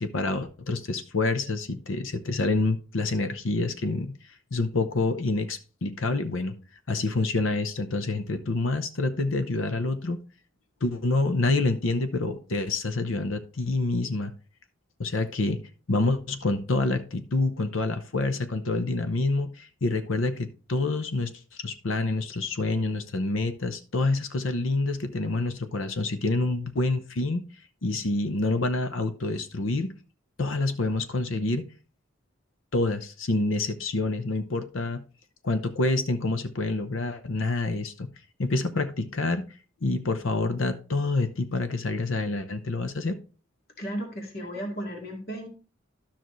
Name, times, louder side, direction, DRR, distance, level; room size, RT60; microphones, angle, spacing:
voice 1, 0.0-4.1 4.5-6.6 6.9-10.2 10.8-14.3 15.0-15.6 15.9-21.3 21.6-27.4 27.8-29.9 30.4-31.7 32.7-35.0 35.4-38.1 38.4-39.5 39.8-43.2, left 2 dB, 75° left, 10 dB, 0.8 m, -27 dB
voice 2, 43.8-45.5, equal, 50° left, 2 dB, 2.2 m, -34 dB
12.5 x 5.9 x 3.1 m, 0.36 s
head